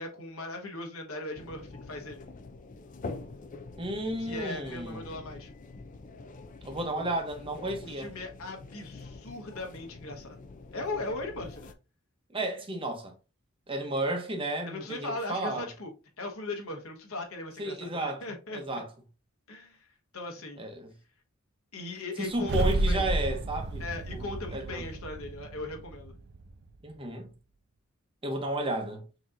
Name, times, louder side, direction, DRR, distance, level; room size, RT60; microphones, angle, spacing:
voice 1, 0.0-2.2 4.2-5.5 7.8-10.4 10.7-11.7 14.7-15.9 16.2-18.8 19.5-19.9 20.1-20.7 21.7-23.1 23.8-26.1, left 2 dB, 80° left, 1.3 m, -39 dB
sound 1, 1.4-11.7, left 3 dB, 35° left, 0.4 m, -45 dB
voice 2, 3.8-5.1 6.6-8.1 12.3-13.1 13.7-15.7 17.6-18.2 18.5-18.9 20.6-20.9 22.2-23.8 24.1-24.8 26.8-27.3 28.2-29.0, right 1 dB, 25° right, 0.9 m, -33 dB
sound 2, 22.3-26.7, right 2 dB, 50° right, 0.4 m, -31 dB
6.1 x 2.9 x 2.5 m
head